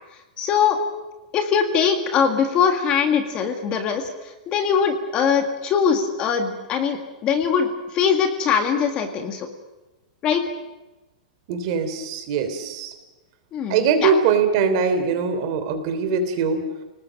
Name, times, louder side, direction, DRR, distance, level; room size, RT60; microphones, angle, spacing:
voice 1, 0.4-0.8 1.3-4.0 4.5-9.5 10.2-10.4 13.5-14.1, left 7 dB, 20° left, 6 dB, 1.8 m, -21 dB
voice 2, 11.5-12.9 13.7-16.6, right 6 dB, 35° right, 8 dB, 3.3 m, -22 dB
29.5 x 19.5 x 7.5 m, 1.1 s
supercardioid pair, 175°, 4 cm